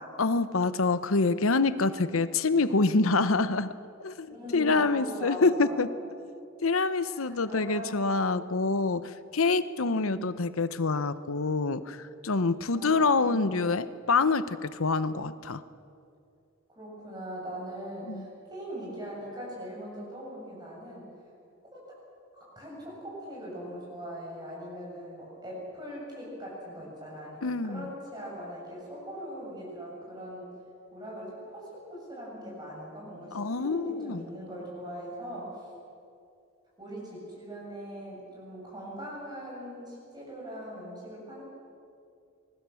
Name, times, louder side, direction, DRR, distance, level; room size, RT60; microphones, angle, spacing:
voice 1, 0.2-3.7 4.0-5.9 6.6-15.6 18.1-18.2 27.4-27.9 33.3-34.2, left 3 dB, 85° left, 14 dB, 0.9 m, -26 dB
voice 2, 4.3-5.8 7.0-8.0 9.9-10.2 12.7-13.5 16.7-21.1 21.7-21.8 22.3-30.5 30.9-35.7 36.8-41.4, equal, 20° right, -4 dB, 7.7 m, -41 dB
26.0 x 20.5 x 7.1 m, 2.5 s
head